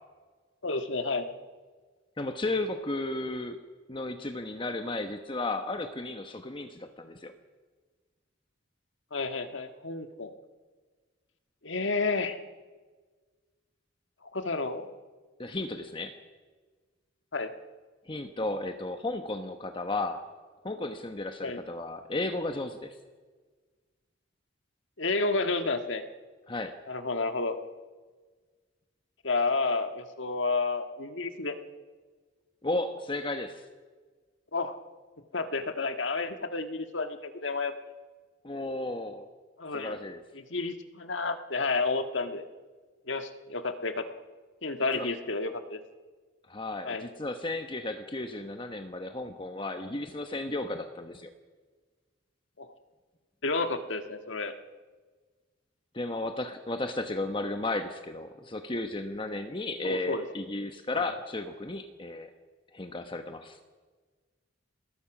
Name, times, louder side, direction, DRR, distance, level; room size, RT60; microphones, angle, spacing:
voice 1, 0.6-1.3 9.1-10.3 11.6-12.4 14.2-14.9 17.3-17.5 21.4-21.6 25.0-26.0 26.9-27.6 29.2-31.6 34.5-34.8 35.3-37.7 39.6-40.0 40.3-42.4 43.1-44.1 44.6-45.8 46.8-47.1 52.6-52.7 53.4-54.5 59.8-60.3 60.9-61.1, left 3 dB, 75° left, 7 dB, 1.7 m, -31 dB
voice 2, 2.2-3.6 3.9-7.3 15.4-16.2 18.1-20.2 20.6-22.9 26.5-26.7 32.6-33.6 38.4-39.3 39.7-40.2 44.9-45.1 46.5-51.3 55.9-62.3 62.7-63.6, left 2 dB, 25° left, 7 dB, 1.1 m, -34 dB
27.0 x 19.5 x 6.1 m, 1.4 s
head